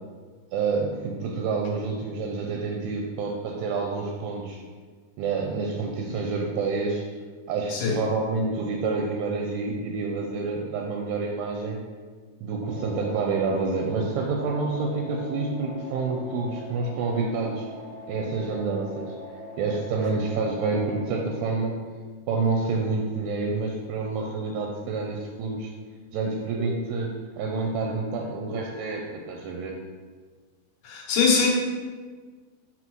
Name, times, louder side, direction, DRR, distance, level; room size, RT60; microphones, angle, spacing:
voice 1, 0.5-4.6 5.2-7.1 7.5-11.8 12.4-17.7 18.1-19.2 19.6-21.7 22.3-25.7 26.1-29.0 29.3-29.8, right 4 dB, 80° right, 0 dB, 2.3 m, -28 dB
sound 1, 12.6-21.0, equal, 40° right, 1.1 m, -41 dB
voice 2, 30.8-31.5, left 5 dB, 80° left, -2 dB, 2.9 m, -22 dB
8.0 x 4.6 x 3.0 m, 1.5 s
omnidirectional pair, 4.4 m